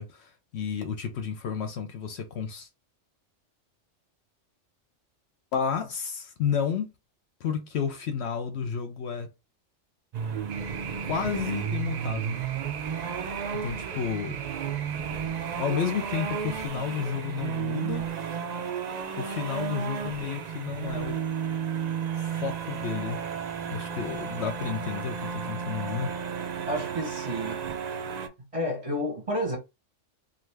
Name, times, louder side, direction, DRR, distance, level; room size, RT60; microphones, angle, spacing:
voice 1, 0.0-2.7 5.5-6.9 7.4-9.3 11.0-12.4 12.9-13.1 13.6-14.4 15.1-18.1 19.2-21.2 22.1-23.2 23.7-26.1, left 7 dB, 65° left, 0.8 m, -31 dB
sound 1, 10.1-28.3, right 7 dB, 90° right, 0.3 m, -33 dB
sound 2, 10.5-16.7, right 7 dB, 70° right, 0.8 m, -40 dB
voice 2, 26.7-27.6 28.5-29.6, equal, 30° right, 0.7 m, -30 dB
2.6 x 2.4 x 3.2 m
omnidirectional pair, 1.3 m